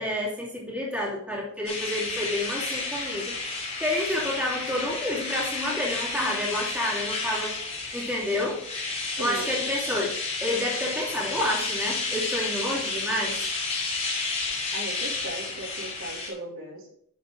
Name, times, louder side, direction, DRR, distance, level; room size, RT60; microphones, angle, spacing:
voice 1, 0.0-7.6 7.9-8.6 9.2-13.4, left 1 dB, 5° right, -5 dB, 2.8 m, -29 dB
sound 1, 1.6-16.3, left 3 dB, 30° left, 3.1 m, -31 dB
voice 2, 9.1-9.6 14.7-16.9, right 1 dB, 70° right, -1 dB, 2.8 m, -37 dB
10.5 x 6.3 x 3.8 m, 0.70 s
head